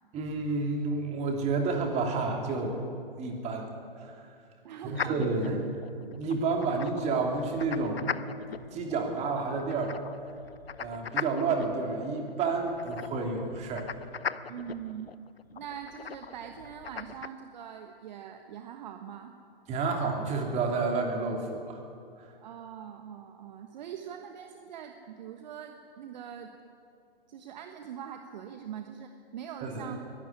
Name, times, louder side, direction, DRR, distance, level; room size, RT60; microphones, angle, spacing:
voice 1, 0.1-2.8 3.2-4.3 4.8-5.6 6.1-8.1 8.7-10.0 10.8-13.9 19.7-21.8 29.6-29.9, right 3 dB, 20° right, 2 dB, 3.1 m, -30 dB
voice 2, 4.6-5.7 14.5-15.1 15.5-19.3 22.4-26.5 27.3-30.0, right 9 dB, 45° right, 5 dB, 1.4 m, -42 dB
sound 1, 4.9-17.3, left 7 dB, 75° left, 0.8 m, -40 dB
22.0 x 12.0 x 9.8 m, 2.5 s
figure-of-eight pair, 120°, 30 cm